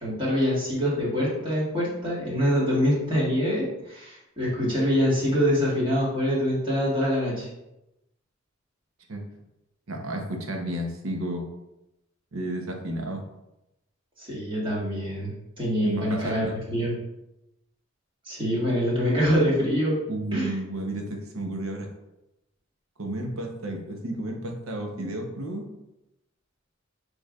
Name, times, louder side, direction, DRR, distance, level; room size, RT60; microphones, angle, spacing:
voice 1, 0.0-7.5 14.2-16.9 18.2-20.0 20.3-20.5, equal, 25° right, -7 dB, 1.6 m, -25 dB
voice 2, 9.9-11.5 12.3-13.2 15.8-16.6 20.1-21.9 23.0-25.7, right 1 dB, 90° right, 3 dB, 0.8 m, -32 dB
6.4 x 3.2 x 2.4 m, 0.92 s
head